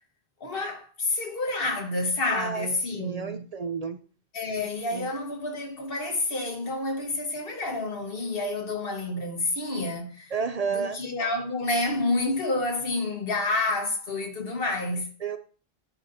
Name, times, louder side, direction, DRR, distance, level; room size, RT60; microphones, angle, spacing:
voice 1, 0.4-3.4 4.3-10.3 10.7-15.1, left 2 dB, 60° left, 1.5 m, -29 dB
voice 2, 2.2-4.0 4.9-5.1 10.3-11.0 15.2-15.4, right 5 dB, 55° right, 0.4 m, -31 dB
10.5 x 5.6 x 2.6 m
omnidirectional pair, 1.1 m